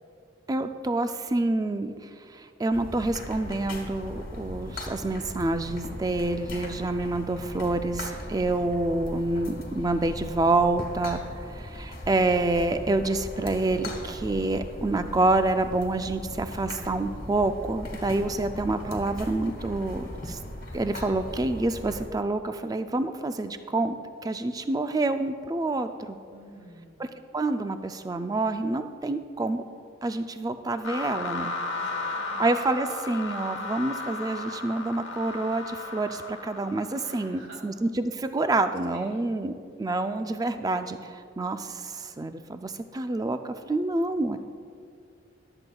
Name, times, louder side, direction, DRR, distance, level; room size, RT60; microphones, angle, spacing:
voice 1, 0.5-1.9 2.3-11.2 11.6-20.4 20.7-23.9 24.2-26.2 27.0-27.1 27.3-29.6 30.0-31.5 32.4-41.0 41.4-44.4, right 2 dB, 20° right, 9 dB, 0.3 m, -27 dB
sound 1, 2.7-22.1, left 1 dB, 40° left, 1.5 m, -39 dB
voice 2, 26.3-27.0 31.7-32.5 37.0-37.8 38.9-39.3, right 1 dB, 60° right, -1 dB, 2.2 m, -48 dB
sound 2, 30.8-37.3, left 3 dB, 65° left, 1.0 m, -35 dB
22.5 x 7.8 x 2.3 m, 2.4 s
head